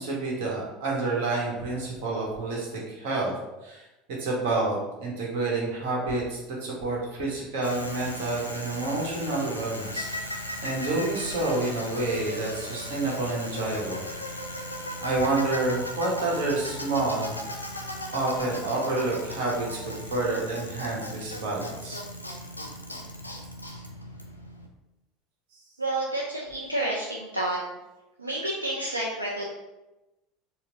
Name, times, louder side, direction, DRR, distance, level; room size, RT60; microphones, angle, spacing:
voice 1, 0.0-3.3 3.6-3.9 4.2-14.0 15.0-17.3 18.1-22.0, right 2 dB, 60° right, -2 dB, 1.1 m, -29 dB
Bicycle, 7.6-24.7, left 1 dB, 90° left, 0.4 m, -37 dB
voice 2, 25.8-27.6 28.2-29.4, right 1 dB, 85° right, -3 dB, 0.4 m, -29 dB
4.4 x 2.0 x 3.8 m, 1.0 s
figure-of-eight pair, 70°, 0 cm